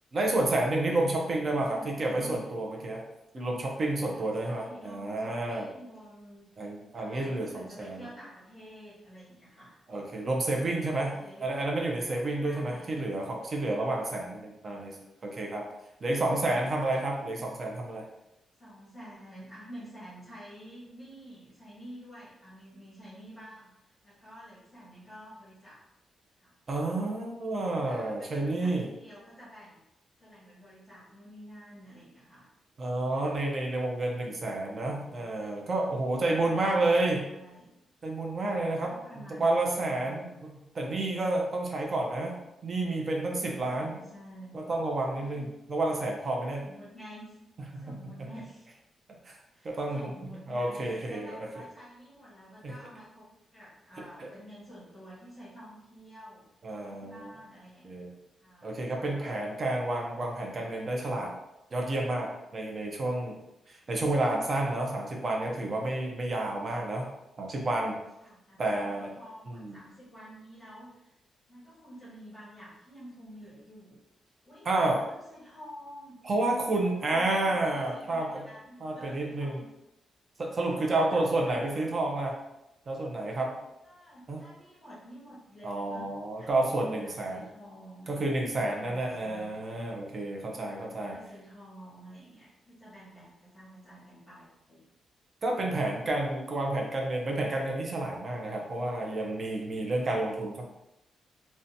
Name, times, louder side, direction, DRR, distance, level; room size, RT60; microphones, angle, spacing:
voice 1, 0.1-3.0 3.3-5.7 6.6-8.1 9.9-15.0 15.2-15.7 16.0-18.1 26.7-28.9 32.8-37.3 38.0-42.3 42.6-44.0 44.5-46.7 47.7-48.3 49.2-49.4 49.6-50.1 50.5-51.5 52.6-52.7 54.0-54.3 56.6-57.3 57.8-58.1 58.6-61.3 61.7-63.4 63.7-67.1 67.4-68.0 68.6-69.1 69.5-69.8 74.6-75.0 76.2-78.4 78.8-79.6 80.4-82.4 82.9-83.6 84.3-84.4 85.6-87.4 88.1-91.2 95.4-100.6, right 2 dB, 30° right, 0 dB, 0.5 m, -30 dB
voice 2, 1.4-2.3 4.1-6.5 6.9-9.8 10.8-11.5 12.4-13.0 16.1-17.0 18.6-25.9 26.3-26.5 27.7-29.8 30.2-32.5 37.1-37.8 38.8-40.5 43.6-44.6 45.1-45.5 46.6-47.4 47.8-48.7 49.5-56.5 56.8-57.9 58.4-58.8 68.2-71.1 71.5-74.0 74.4-76.2 77.0-79.7 80.8-81.6 83.8-86.1 86.4-86.7 87.0-89.6 90.7-94.8 96.0-96.1, equal, 15° left, -11 dB, 0.8 m, -49 dB
2.7 x 2.1 x 2.6 m, 0.90 s
wide cardioid pair, 175°, 0 cm